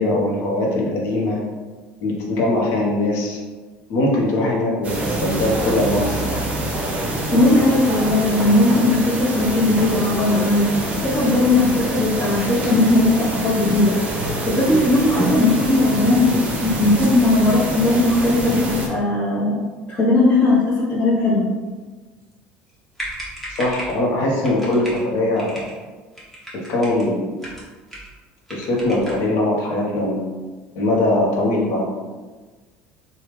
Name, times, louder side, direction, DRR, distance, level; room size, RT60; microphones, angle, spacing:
voice 1, 0.0-1.4 2.0-3.4 3.9-6.5 23.5-25.7 26.5-27.3 28.5-30.3 30.8-31.8, left 1 dB, 65° left, -1 dB, 0.8 m, -21 dB
sound 1, 4.8-18.9, right 1 dB, 30° right, 0.8 m, -26 dB
voice 2, 7.3-14.0 14.5-16.4 16.6-21.5, left 2 dB, 35° left, -8 dB, 0.8 m, -18 dB
sound 2, 22.7-22.8 22.9-24.0 24.4-25.0 25.4-25.7 26.1-27.1 27.4-28.2 28.5-29.3, equal, 5° left, 1.1 m, -35 dB
3.4 x 2.3 x 3.0 m, 1.3 s
supercardioid pair, 110°, 4 cm